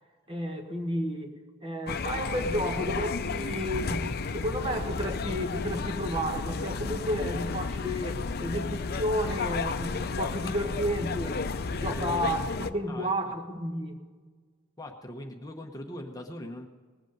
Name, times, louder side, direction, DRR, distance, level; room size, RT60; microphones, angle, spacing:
voice 1, 0.3-11.4 11.7-14.0, equal, 25° right, 4 dB, 1.5 m, -32 dB
sound 1, 1.9-12.7, left 4 dB, 50° left, 0.6 m, -32 dB
voice 2, 11.8-12.3 12.9-13.1 14.8-16.7, left 1 dB, 20° left, 2 dB, 0.9 m, -40 dB
20.0 x 8.2 x 5.2 m, 1.5 s
head